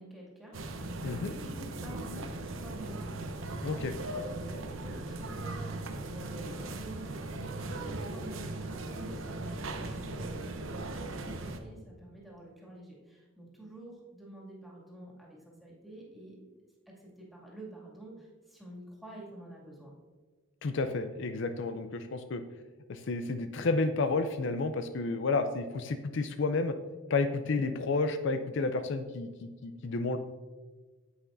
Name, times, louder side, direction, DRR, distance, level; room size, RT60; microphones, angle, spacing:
voice 1, 0.0-16.5 16.9-19.9, right 1 dB, ahead, -5 dB, 2.2 m, -49 dB
sound 1, 0.5-11.6, right 2 dB, 75° right, 0.8 m, -38 dB
voice 2, 3.6-3.9 20.6-22.4 22.9-26.7 27.1-30.2, left 3 dB, 65° left, 9 dB, 0.5 m, -31 dB
9.6 x 8.3 x 2.6 m, 1.4 s
head